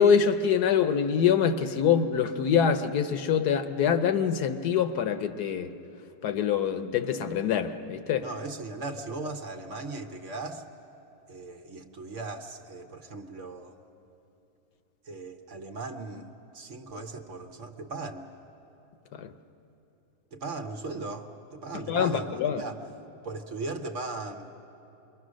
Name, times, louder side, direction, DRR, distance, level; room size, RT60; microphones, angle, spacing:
voice 1, 0.0-5.7 6.2-8.3 19.1-19.3 21.9-22.6, left 7 dB, 70° left, 9 dB, 1.3 m, -25 dB
voice 2, 8.2-10.7 11.3-13.7 15.0-18.2 20.3-22.8 23.2-24.5, right 3 dB, 50° right, 4 dB, 1.2 m, -38 dB
27.0 x 22.5 x 6.3 m, 2.9 s
omnidirectional pair, 1.8 m